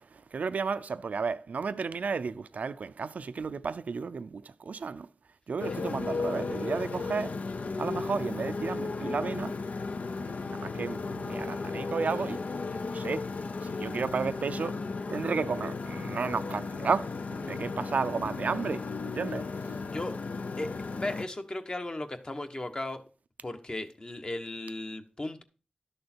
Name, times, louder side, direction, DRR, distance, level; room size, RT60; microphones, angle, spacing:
voice 1, 0.3-5.1 5.5-7.4 7.8-9.6 10.5-12.4 12.9-13.3 13.6-14.8 15.1-18.9 19.1-19.5, right 5 dB, 85° right, 0.4 m, -33 dB
Motorcycle, 5.6-21.3, left 4 dB, 75° left, 0.6 m, -35 dB
voice 2, 19.8-20.2 20.6-23.0 23.4-25.4, left 2 dB, 35° left, 1.2 m, -36 dB
12.0 x 6.6 x 4.4 m
wide cardioid pair, 90°, 3 cm